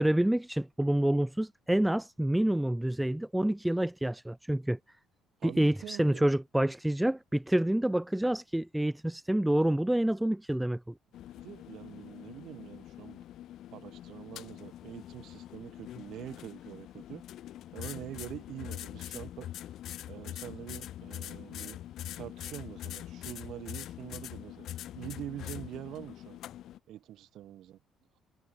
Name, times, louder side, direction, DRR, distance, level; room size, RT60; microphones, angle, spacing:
voice 1, 0.0-4.8 5.4-10.9, right 1 dB, 5° right, 0.6 m, -28 dB
voice 2, 5.4-6.2 11.3-13.2 13.7-17.2 17.7-19.5 20.1-21.8 22.2-24.7 24.9-26.4 26.9-27.8, right 12 dB, 65° right, 3.2 m, -45 dB
sound 1, 11.1-26.8, left 12 dB, 60° left, 5.3 m, -44 dB
cardioid pair, 140°, 0 cm